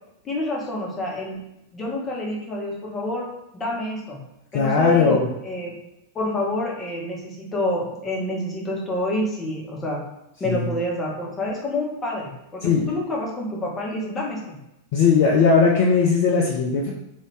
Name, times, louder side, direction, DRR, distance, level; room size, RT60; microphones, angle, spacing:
voice 1, 0.2-1.4 1.7-3.2 3.5-4.2 4.5-5.8 6.1-10.0 10.4-14.6, left 1 dB, 20° left, -3 dB, 1.1 m, -28 dB
voice 2, 4.5-5.3 10.5-10.7 12.6-12.8 14.9-16.9, left 5 dB, 50° left, -3 dB, 0.5 m, -18 dB
3.1 x 2.7 x 3.2 m, 0.88 s
figure-of-eight pair, 90°, 0 cm